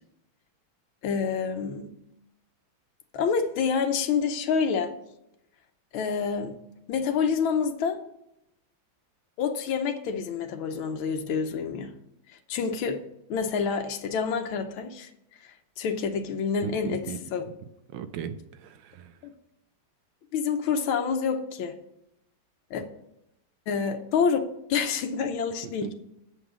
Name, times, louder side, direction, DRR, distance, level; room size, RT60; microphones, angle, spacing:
voice 1, 1.0-1.9 3.1-4.9 5.9-6.6 6.9-8.0 9.4-11.9 12.5-13.0 13.3-15.1 15.4-17.0 17.3-17.4 19.2-19.3 20.3-21.7 22.7-22.8 23.7-24.4 24.7-25.9, left 6 dB, 90° left, 1.6 m, -27 dB
voice 2, 16.6-17.2 17.9-19.2 25.6-25.9, right 8 dB, 80° right, 1.4 m, -37 dB
8.1 x 5.5 x 6.1 m
omnidirectional pair, 2.2 m